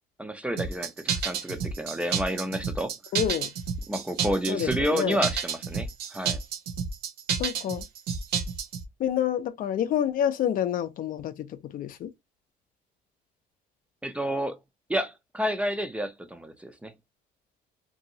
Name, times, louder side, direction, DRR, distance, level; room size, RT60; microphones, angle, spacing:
voice 1, 0.2-2.9 3.9-6.4 14.0-14.6 14.9-16.9, equal, 5° right, 0.5 m, -30 dB
sound 1, 0.6-8.8, right 6 dB, 70° right, 0.7 m, -30 dB
voice 2, 3.1-3.5 4.5-5.2 7.4-7.9 9.0-12.1, left 10 dB, 55° left, 0.5 m, -28 dB
2.9 x 2.7 x 2.7 m
cardioid pair, 110°, 17 cm